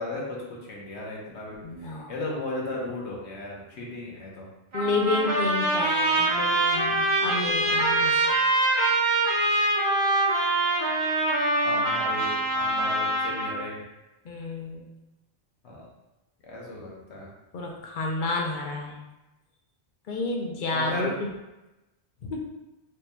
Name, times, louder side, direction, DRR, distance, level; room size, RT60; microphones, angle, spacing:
voice 1, 0.0-4.5 11.2-11.3 11.6-13.8 15.6-15.9 16.4-17.3 20.7-21.2, left 2 dB, 90° left, -3 dB, 1.2 m, -36 dB
voice 2, 1.6-2.1 4.7-8.2 14.2-14.9 17.5-19.0 20.1-21.1 22.2-22.4, left 3 dB, 55° left, 0 dB, 0.7 m, -30 dB
Trumpet, 4.7-13.6, right 2 dB, 75° right, 1.5 m, -24 dB
4.4 x 2.8 x 2.2 m, 0.99 s
omnidirectional pair, 1.1 m